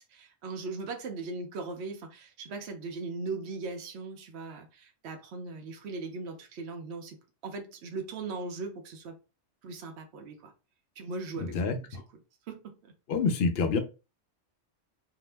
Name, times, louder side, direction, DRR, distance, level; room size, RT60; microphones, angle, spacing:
voice 1, 0.1-7.2 7.4-9.2 9.6-10.5 11.0-11.9 12.5-12.9, right 3 dB, 65° right, 0.9 m, -39 dB
voice 2, 11.4-11.8 13.1-13.8, left 4 dB, 65° left, 0.8 m, -27 dB
2.8 x 2.0 x 3.2 m
omnidirectional pair, 1.2 m